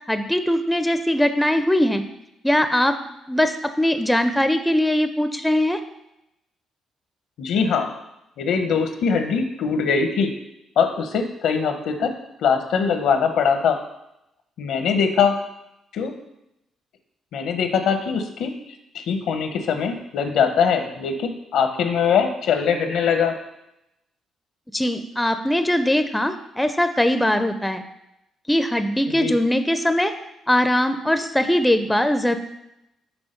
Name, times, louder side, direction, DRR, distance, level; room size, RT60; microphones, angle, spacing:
voice 1, 0.1-2.0 2.4-3.0 3.3-5.8 24.7-27.8 28.5-30.1 30.5-32.4, left 1 dB, 5° left, 9 dB, 0.5 m, -21 dB
voice 2, 7.4-7.9 8.4-10.3 10.8-12.1 12.4-13.8 14.6-15.3 15.9-16.1 17.3-18.5 18.9-23.3 29.1-29.4, left 6 dB, 80° left, 6 dB, 0.8 m, -22 dB
6.1 x 3.7 x 5.1 m, 0.84 s
cardioid pair, 90°, 0 cm